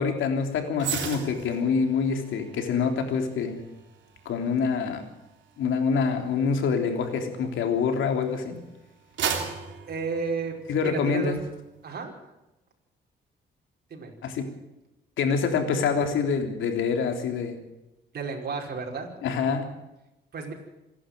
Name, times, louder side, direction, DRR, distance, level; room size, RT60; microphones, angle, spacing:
voice 1, 0.0-3.6 4.3-5.0 5.6-8.6 10.7-11.4 14.2-14.5 15.2-17.6 19.2-19.6, left 5 dB, 80° left, 4 dB, 3.5 m, -26 dB
sound 1, 0.8-8.2 8.6-11.0 11.4-11.6, right 7 dB, 70° right, 3.4 m, -37 dB
voice 2, 9.9-10.5 10.8-11.4 11.8-12.1 13.9-14.1 18.1-19.1 20.3-20.5, right 5 dB, 50° right, 0 dB, 5.3 m, -32 dB
26.5 x 11.5 x 9.3 m, 0.96 s
cardioid pair, 90°, 20 cm